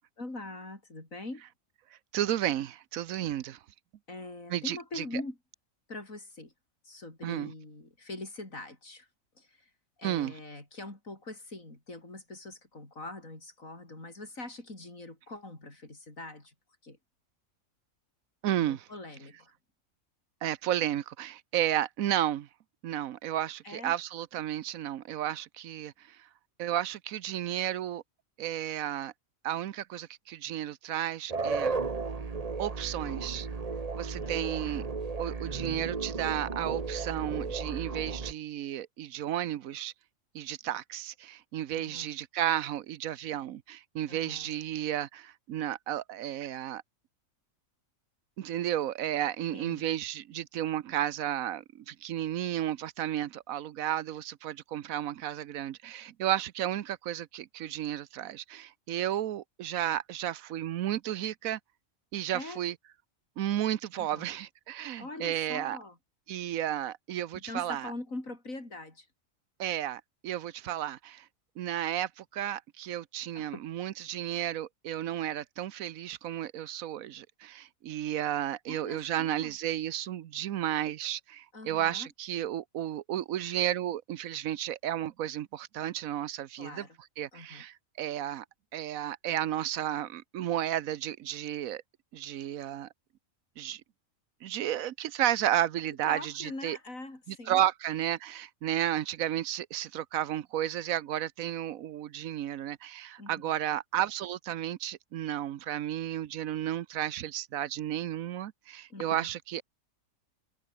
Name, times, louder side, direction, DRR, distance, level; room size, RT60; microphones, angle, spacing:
voice 1, 0.2-1.4 4.1-5.4 5.9-6.5 6.8-9.1 9.4-9.7 10.0-16.5 16.8-17.0 18.6-19.5 23.6-23.9 34.2-34.7 41.7-42.1 44.1-44.5 49.5-49.8 62.3-62.6 63.9-64.3 65.0-66.0 67.3-69.1 73.3-73.6 78.7-79.5 81.5-82.1 86.6-87.0 87.3-87.6 96.0-97.6 103.2-103.5 108.9-109.3, left 2 dB, 75° left, 6.4 m, -43 dB
voice 2, 2.1-3.6 4.5-5.0 7.2-7.5 10.0-10.3 18.4-18.9 20.4-22.5 22.8-26.2 26.6-28.0 28.4-29.1 29.4-31.7 32.6-33.5 34.0-34.8 35.2-39.9 40.3-46.8 48.4-61.6 62.1-62.7 63.4-65.8 66.3-67.9 69.6-71.2 71.6-86.8 87.2-88.4 88.7-91.8 92.1-92.9 93.6-93.8 94.4-96.8 97.3-109.6, right 12 dB, 90° right, 1.2 m, -33 dB
sound 1, 31.3-38.3, right 4 dB, 30° right, 1.2 m, -34 dB
omnidirectional pair, 1.4 m